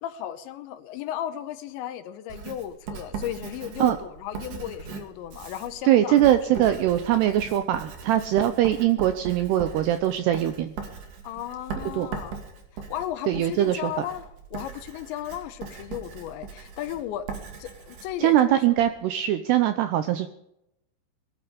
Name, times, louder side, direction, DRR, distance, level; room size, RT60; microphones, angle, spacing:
voice 1, 0.0-6.3 11.2-12.4 12.7-17.3 17.6-18.6, left 11 dB, 75° left, 11 dB, 2.9 m, -35 dB
Writing, 2.3-18.9, right 6 dB, 50° right, 3.3 m, -39 dB
voice 2, 5.9-10.7 12.0-12.1 13.3-14.1 18.2-20.3, right 12 dB, 85° right, 10 dB, 2.4 m, -22 dB
20.0 x 12.0 x 5.1 m, 0.81 s
omnidirectional pair, 5.6 m